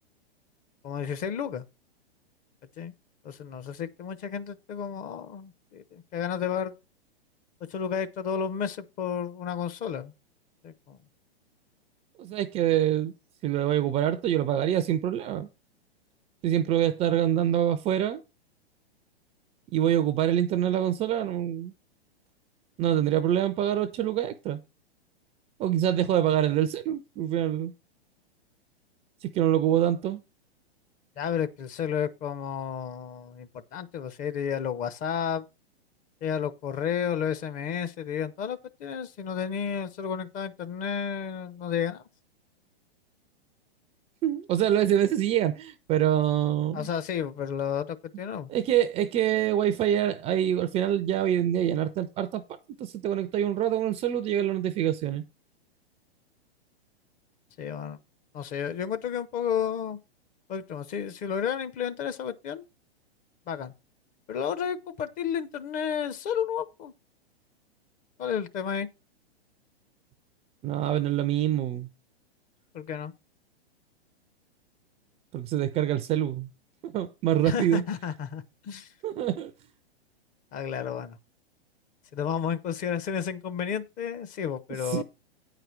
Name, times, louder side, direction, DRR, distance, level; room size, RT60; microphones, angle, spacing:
voice 1, 0.8-1.6 2.8-2.9 3.2-6.7 7.7-10.1 10.6-11.0 31.2-35.4 36.2-42.0 46.7-48.5 57.6-58.0 58.3-60.0 60.5-62.6 63.5-63.7 64.3-66.9 68.2-68.9 72.7-73.1 77.4-78.9 80.5-81.2 82.1-85.0, left 8 dB, 25° left, 0.7 m, -32 dB
voice 2, 12.2-13.1 13.4-15.5 16.4-18.2 19.7-21.7 22.8-24.6 25.6-27.7 29.2-30.2 44.2-46.9 48.5-52.4 52.8-55.2 70.6-71.9 75.3-76.5 76.8-77.8 79.0-79.5 84.8-85.0, right 11 dB, 20° right, 0.4 m, -25 dB
9.0 x 5.0 x 5.9 m
hypercardioid pair, 110°, 32 cm